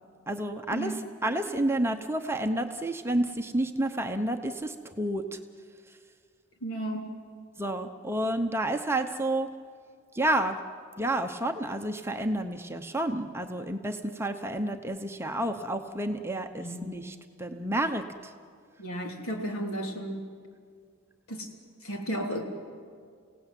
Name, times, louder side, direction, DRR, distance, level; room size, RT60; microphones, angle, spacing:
voice 1, 0.3-5.4 7.6-9.5 10.1-10.6 11.0-18.3, right 1 dB, 10° right, 5 dB, 0.8 m, -30 dB
voice 2, 6.6-7.0 16.6-16.8 18.8-20.2 21.3-21.5 21.8-22.4, right 1 dB, 65° left, 2 dB, 3.4 m, -33 dB
29.5 x 17.5 x 9.1 m, 2.1 s
head